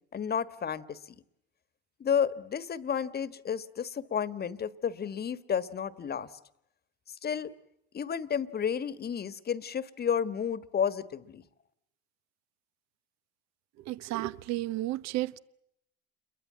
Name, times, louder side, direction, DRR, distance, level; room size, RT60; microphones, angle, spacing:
voice 1, 0.1-1.0 2.0-6.3 7.2-7.5 7.9-11.4, left 7 dB, 30° left, 1.5 m, -31 dB
voice 2, 13.9-15.4, right 17 dB, 60° right, 1.0 m, -32 dB
28.5 x 22.5 x 7.5 m
supercardioid pair, 85°, 31 cm